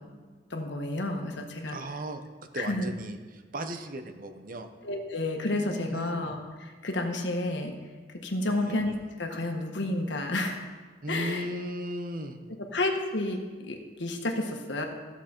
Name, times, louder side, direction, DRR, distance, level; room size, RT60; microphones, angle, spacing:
voice 1, 0.5-1.8 2.5-2.9 4.8-7.7 8.2-8.9 9.2-10.6 11.1-11.5 12.7-14.9, left 2 dB, 80° left, 3 dB, 1.5 m, -30 dB
voice 2, 1.7-2.2 2.5-4.7 5.9-6.4 8.5-8.8 11.0-12.4, right 1 dB, 50° right, 7 dB, 0.8 m, -36 dB
15.0 x 7.1 x 4.5 m, 1.4 s
head